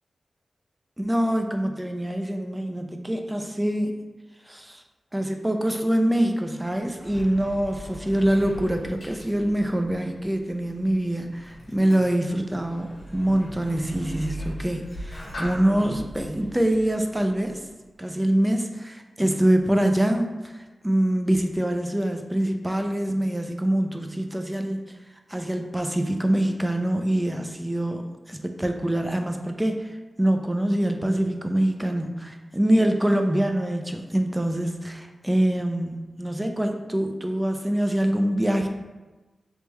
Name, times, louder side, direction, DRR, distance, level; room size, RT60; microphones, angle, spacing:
voice 1, 1.0-4.0 4.5-4.8 5.1-17.6 18.0-25.0 25.3-38.7, right 1 dB, 10° right, 5 dB, 0.4 m, -25 dB
Sliding door, 6.7-17.9, equal, 70° left, 1.2 m, -40 dB
3.5 x 3.3 x 3.1 m, 1.2 s
wide cardioid pair, 85°, 0 cm